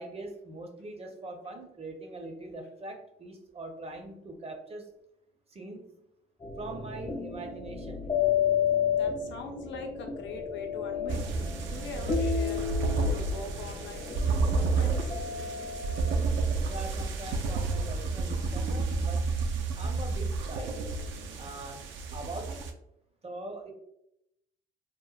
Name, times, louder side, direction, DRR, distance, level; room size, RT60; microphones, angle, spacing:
voice 1, 0.0-4.9 5.5-5.9 6.6-8.1 16.7-19.4 19.8-20.9 21.4-21.9 22.1-22.7 23.2-23.7, right 2 dB, 30° right, 3 dB, 0.5 m, -42 dB
sound 1, 6.4-16.8, left 8 dB, 20° left, 0.4 m, -32 dB
voice 2, 8.7-11.2 11.7-12.6 13.1-14.1 14.6-15.1, left 3 dB, 70° left, 3 dB, 0.6 m, -42 dB
sound 2, 11.1-22.7, right 3 dB, 75° right, 0.4 m, -30 dB
2.9 x 2.1 x 2.3 m, 0.80 s
cardioid pair, 90°, 20 cm